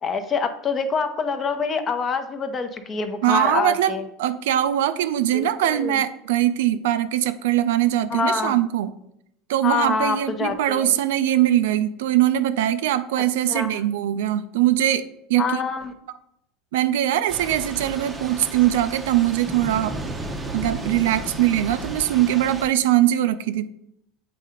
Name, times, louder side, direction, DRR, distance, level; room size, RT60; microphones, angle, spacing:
voice 1, 0.0-4.0 5.3-6.0 8.1-8.6 9.6-10.9 13.5-13.7 15.4-15.9, left 5 dB, 25° left, 8 dB, 0.6 m, -26 dB
voice 2, 3.2-8.9 9.5-15.6 16.7-20.0 20.5-23.7, right 12 dB, 90° right, 12 dB, 0.4 m, -21 dB
Thunder / Rain, 17.3-22.7, right 2 dB, 15° right, 0.6 m, -33 dB
7.8 x 2.8 x 5.0 m, 0.78 s
supercardioid pair, 140°, 0 cm